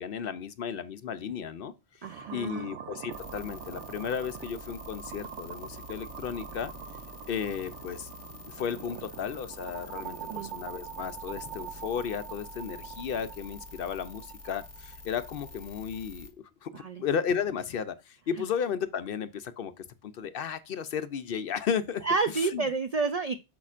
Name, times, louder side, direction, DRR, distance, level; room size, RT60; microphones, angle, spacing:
voice 1, 0.0-1.7 2.0-6.7 7.3-8.1 8.5-16.3 16.6-22.0 22.3-22.7, left 7 dB, 60° left, 0.7 m, -34 dB
voice 2, 2.0-2.7 10.3-10.5 16.7-17.0 22.0-23.4, right 4 dB, 65° right, 0.3 m, -29 dB
sound 1, 2.0-16.0, right 9 dB, 80° right, 0.9 m, -44 dB
sound 2, 3.1-16.3, left 3 dB, 30° left, 1.2 m, -47 dB
8.5 x 6.1 x 2.4 m
omnidirectional pair, 1.2 m